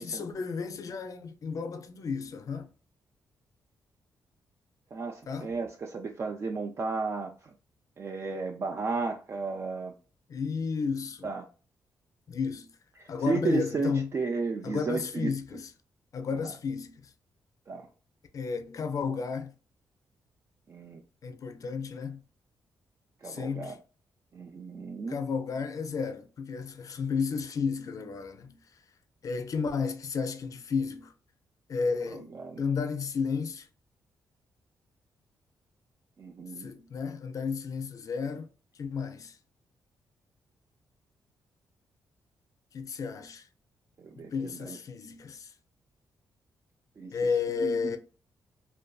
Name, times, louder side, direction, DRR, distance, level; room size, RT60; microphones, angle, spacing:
voice 1, 0.0-2.7 5.3-5.5 10.3-11.3 12.3-12.7 13.1-14.1 14.6-15.7 16.1-17.1 18.3-19.5 21.2-22.2 23.2-23.8 25.1-28.8 29.2-31.1 31.7-33.7 36.6-38.5 38.7-39.4 42.7-43.5 44.2-45.5 47.1-48.0, left 5 dB, 50° left, 0.4 m, -32 dB
voice 2, 4.9-7.5 8.0-9.9 11.2-11.5 13.0-15.3 16.4-16.5 17.7-17.9 20.7-21.0 23.2-23.7 24.3-25.2 32.1-32.6 36.2-36.7 44.0-44.8 47.0-47.2 47.6-48.0, right 4 dB, 40° right, 0.3 m, -34 dB
2.6 x 2.2 x 2.2 m
cardioid pair, 85°, 7 cm